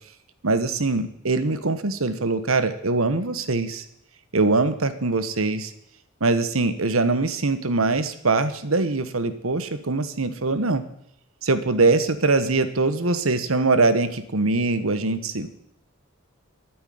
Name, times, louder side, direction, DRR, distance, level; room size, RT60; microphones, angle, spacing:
voice 1, 0.4-3.8 4.3-5.7 6.2-10.8 11.4-15.5, right 3 dB, 80° right, 11 dB, 1.3 m, -22 dB
11.0 x 9.3 x 9.5 m, 0.73 s
head